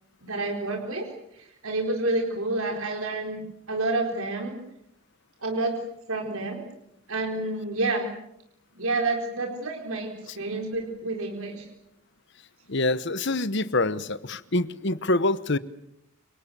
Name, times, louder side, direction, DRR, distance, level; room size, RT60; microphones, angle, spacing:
voice 1, 0.2-1.1 1.3-4.6 5.4-5.8 6.1-6.6 7.1-8.1 8.8-11.7, right 2 dB, 75° right, 4.2 m, -29 dB
voice 2, 12.7-15.6, left 2 dB, 50° left, 1.0 m, -25 dB
29.5 x 26.0 x 6.9 m
head